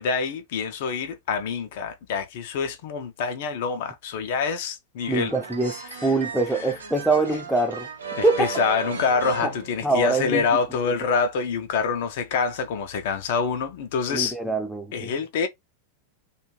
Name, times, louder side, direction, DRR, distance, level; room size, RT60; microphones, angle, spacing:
voice 1, 0.0-5.3 5.8-6.1 8.2-14.4 14.9-15.5, left 5 dB, 50° left, 0.5 m, -26 dB
sound 1, 5.0-10.4, right 5 dB, 70° right, 0.7 m, -36 dB
voice 2, 5.1-5.7 6.0-7.9 8.2-8.5 9.4-9.5 9.8-10.5 11.0-11.1 14.1-15.1, right 3 dB, ahead, 0.6 m, -24 dB
2.4 x 2.3 x 3.1 m
figure-of-eight pair, 90°, 0 cm